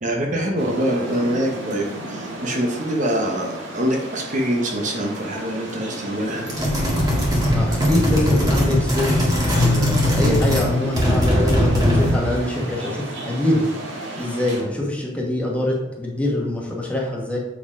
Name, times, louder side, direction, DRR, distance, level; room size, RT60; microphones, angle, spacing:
voice 1, 0.0-6.5, right 1 dB, 40° right, 1 dB, 0.9 m, -24 dB
sound 1, 0.6-14.6, right 1 dB, 75° right, 1.7 m, -34 dB
sound 2, 6.5-10.7 10.9-12.3, equal, 20° right, 1.6 m, -20 dB
voice 2, 7.5-13.7 14.2-17.4, left 1 dB, 5° left, -3 dB, 1.4 m, -24 dB
Keyboard (musical), 9.6-12.5, left 4 dB, 75° left, 0.5 m, -27 dB
7.1 x 4.9 x 4.9 m, 0.98 s
head